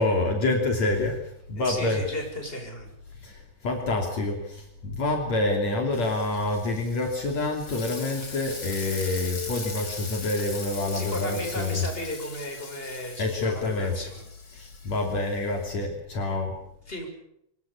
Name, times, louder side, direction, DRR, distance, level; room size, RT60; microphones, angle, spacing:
voice 1, 0.0-2.0 3.2-11.8 13.2-13.9 14.5-16.5, left 2 dB, 55° left, 2 dB, 4.2 m, -27 dB
voice 2, 1.6-2.9 10.8-14.2 16.9-17.1, left 1 dB, 15° left, 3 dB, 6.6 m, -35 dB
Frying (food), 5.9-15.6, left 4 dB, 35° left, 4.0 m, -41 dB
25.5 x 22.5 x 7.1 m, 0.76 s
omnidirectional pair, 3.7 m